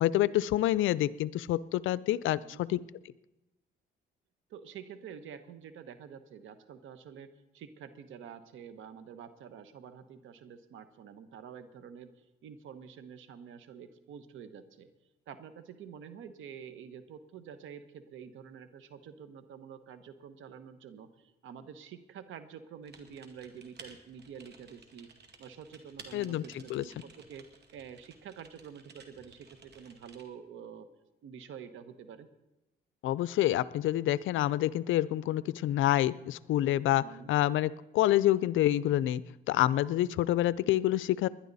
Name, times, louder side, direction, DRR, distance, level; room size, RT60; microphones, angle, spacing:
voice 1, 0.0-2.8 26.1-26.4 26.7-26.8 33.0-39.2 39.5-41.3, left 14 dB, 80° left, 19 dB, 0.5 m, -27 dB
voice 2, 4.5-14.9 15.3-25.1 25.4-30.9 31.2-32.3 36.9-37.3, right 7 dB, 80° right, 11 dB, 1.2 m, -48 dB
Typing, 22.8-30.2, right 4 dB, 60° right, 2.1 m, -55 dB
20.5 x 11.0 x 4.1 m, 0.96 s
cardioid pair, 90°, 20 cm